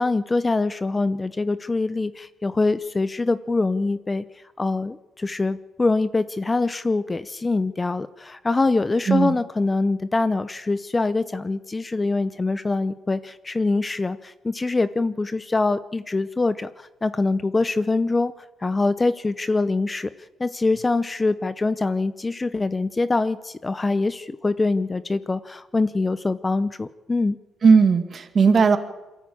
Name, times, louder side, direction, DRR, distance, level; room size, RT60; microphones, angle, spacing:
voice 1, 0.0-4.2 4.6-18.3 18.6-20.1 20.4-27.4, left 3 dB, 20° left, 14 dB, 0.6 m, -24 dB
voice 2, 27.6-28.8, right 5 dB, 45° right, 8 dB, 2.1 m, -16 dB
23.0 x 14.0 x 8.6 m, 1.1 s
cardioid pair, 90°, 0 cm